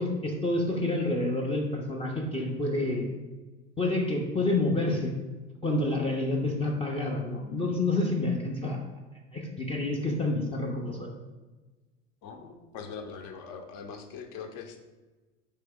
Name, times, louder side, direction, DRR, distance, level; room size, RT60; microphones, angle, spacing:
voice 1, 0.0-3.0 3.8-5.1 5.6-8.8 9.3-11.1, left 2 dB, 15° left, 0 dB, 0.5 m, -28 dB
voice 2, 12.2-14.8, left 6 dB, 50° left, 6 dB, 0.8 m, -42 dB
4.5 x 3.4 x 3.5 m, 1.2 s
hypercardioid pair, 90°, 35 cm